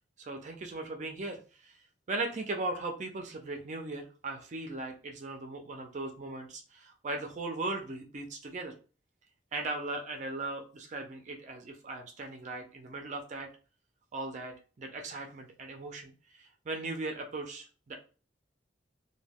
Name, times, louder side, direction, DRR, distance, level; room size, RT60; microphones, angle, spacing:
voice 1, 0.2-1.8 2.1-8.7 9.5-13.5 14.1-18.0, right 2 dB, 40° right, 3 dB, 0.4 m, -38 dB
2.2 x 2.2 x 3.4 m, 0.36 s
head